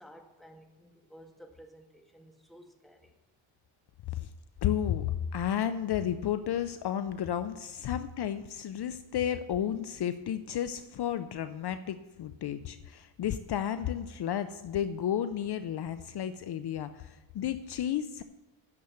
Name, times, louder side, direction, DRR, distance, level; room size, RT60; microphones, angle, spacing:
voice 1, 0.0-3.1 7.9-8.0, equal, ahead, 1.6 m, -54 dB
voice 2, 4.6-18.2, left 10 dB, 55° left, 0.6 m, -32 dB
9.5 x 6.9 x 8.1 m
cardioid pair, 115°, 48 cm